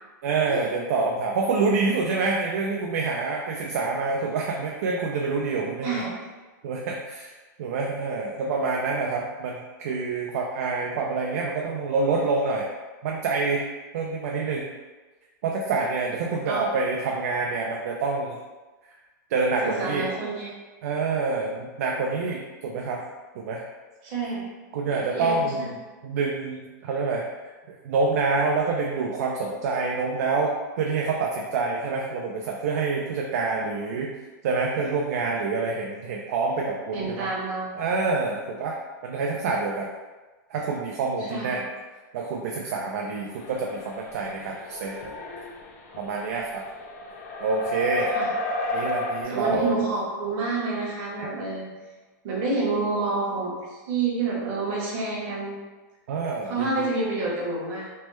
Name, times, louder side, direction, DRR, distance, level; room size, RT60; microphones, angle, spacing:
voice 1, 0.2-6.0 6.6-7.3 7.6-12.7 13.0-13.6 13.9-14.7 15.4-18.4 19.3-20.1 20.8-23.0 23.4-23.6 24.7-25.7 26.0-27.2 27.7-34.1 34.4-37.3 37.7-38.8 39.0-39.9 40.5-41.6 42.1-45.1 46.0-46.6 47.4-48.1 48.7-49.8 56.1-56.9, right 4 dB, 55° right, -1 dB, 0.3 m, -27 dB
voice 2, 5.8-6.1 16.2-16.7 19.6-20.5 24.0-24.5 24.8-25.7 36.9-37.8 41.3-41.6 48.1-48.3 49.2-51.7 52.2-55.5 56.4-57.9, right 3 dB, 35° right, -5 dB, 0.9 m, -28 dB
sound 1, 43.3-49.2, left 2 dB, 50° left, 0.4 m, -32 dB
3.2 x 2.1 x 3.1 m, 1.3 s
supercardioid pair, 170°, 10 cm